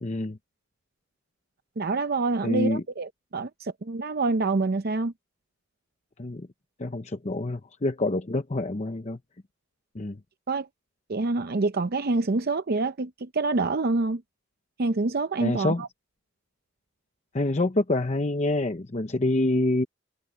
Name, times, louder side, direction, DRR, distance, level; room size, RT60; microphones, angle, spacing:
voice 1, 0.0-0.4 2.4-2.8 6.2-6.5 6.8-9.2 9.9-10.2 15.4-15.8 17.3-19.9, left 2 dB, 35° left, 0.8 m, -26 dB
voice 2, 1.8-5.1 10.5-10.7 11.1-14.2 14.8-15.9, right 3 dB, 50° right, 0.6 m, -26 dB
head